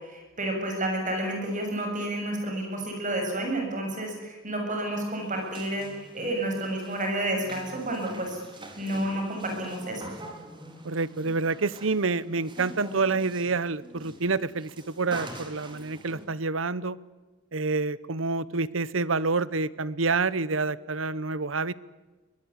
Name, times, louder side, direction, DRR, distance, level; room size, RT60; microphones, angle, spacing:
voice 1, 0.0-8.4 8.8-10.0, right 1 dB, 40° right, 2 dB, 7.0 m, -30 dB
sound 1, 5.0-16.3, right 1 dB, 25° right, 4.0 m, -45 dB
voice 2, 10.8-17.0 17.5-21.7, right 4 dB, 75° right, 19 dB, 0.9 m, -28 dB
23.5 x 19.5 x 9.8 m, 1.2 s
head